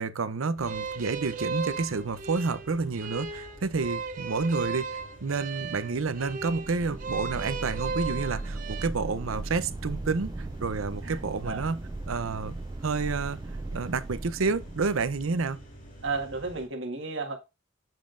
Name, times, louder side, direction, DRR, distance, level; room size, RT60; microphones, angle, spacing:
voice 1, 0.0-11.8 12.1-12.6 12.8-13.4 13.7-15.6, right 4 dB, 85° right, 0.6 m, -29 dB
sound 1, 0.6-16.7, equal, 40° left, 2.1 m, -50 dB
sound 2, 0.6-8.9, right 5 dB, 40° right, 0.7 m, -36 dB
sound 3, 6.4-15.7, right 2 dB, 20° right, 0.3 m, -38 dB
voice 2, 16.0-17.4, right 3 dB, 65° right, 1.6 m, -33 dB
7.5 x 5.2 x 2.5 m
head